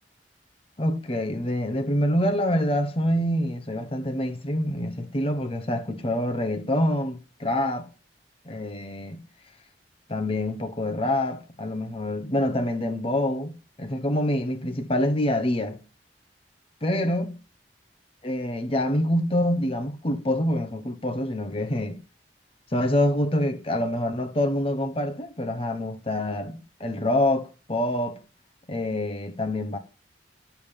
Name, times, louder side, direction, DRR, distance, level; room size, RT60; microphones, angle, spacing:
voice 1, 0.8-7.9 8.5-9.2 10.1-15.8 16.8-17.3 18.2-22.0 22.7-28.2 28.7-29.8, left 1 dB, 30° left, 1.0 m, -26 dB
11.5 x 7.0 x 5.3 m
head